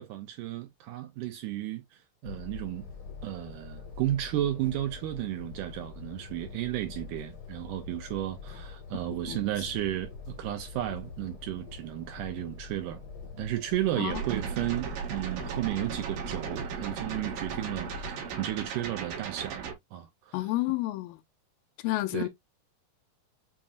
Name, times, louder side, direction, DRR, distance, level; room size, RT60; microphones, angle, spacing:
voice 1, 0.0-2.9 3.2-13.0 13.4-20.5 22.1-22.3, right 13 dB, 85° right, 1.8 m, -33 dB
sound 1, 2.2-18.5, left 5 dB, 55° left, 1.1 m, -45 dB
voice 2, 9.1-9.4 14.0-14.2 20.3-21.2 21.8-22.3, left 17 dB, 80° left, 2.3 m, -30 dB
sound 2, 14.1-19.7, right 6 dB, 65° right, 3.0 m, -36 dB
7.3 x 2.7 x 2.4 m
omnidirectional pair, 4.3 m